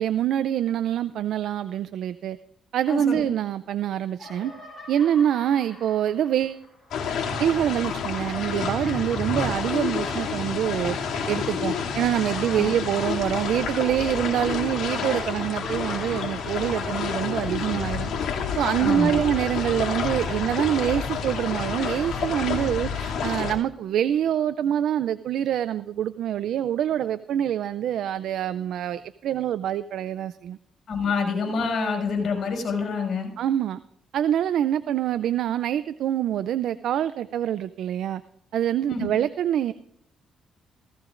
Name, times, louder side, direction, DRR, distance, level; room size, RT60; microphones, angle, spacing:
voice 1, 0.0-2.4 2.7-4.5 4.9-6.6 7.4-18.1 18.6-30.6 33.4-33.8 34.1-38.2 38.5-39.7, right 10 dB, 75° right, 13 dB, 0.4 m, -25 dB
voice 2, 2.9-3.2 12.5-12.7 18.8-19.1 30.9-33.3 38.9-39.1, left 4 dB, 60° left, 1 dB, 6.4 m, -27 dB
sound 1, 3.2-3.8 4.1-7.4 7.9-18.5 18.8-22.9, left 2 dB, 25° left, 5.8 m, -45 dB
sound 2, 6.9-23.5, left 5 dB, 80° left, 2.5 m, -29 dB
17.5 x 15.0 x 2.5 m, 0.74 s
cardioid pair, 90°, 0 cm